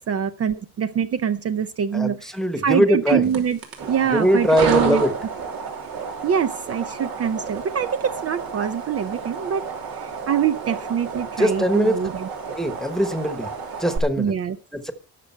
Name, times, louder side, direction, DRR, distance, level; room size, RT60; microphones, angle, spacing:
voice 1, 0.1-2.4 2.6-3.6 3.9-5.0 6.2-9.6 9.9-12.3 14.2-14.6, right 8 dB, 45° right, 10 dB, 0.6 m, -24 dB
voice 2, 1.9-3.2 4.1-5.1 11.4-12.0 12.6-13.5 13.8-14.3 14.7-14.9, equal, ahead, 8 dB, 1.2 m, -21 dB
sound 1, 3.2-14.0, right 5 dB, 75° right, 3.1 m, -31 dB
19.5 x 6.5 x 4.4 m, 0.36 s
cardioid pair, 155°, 35 cm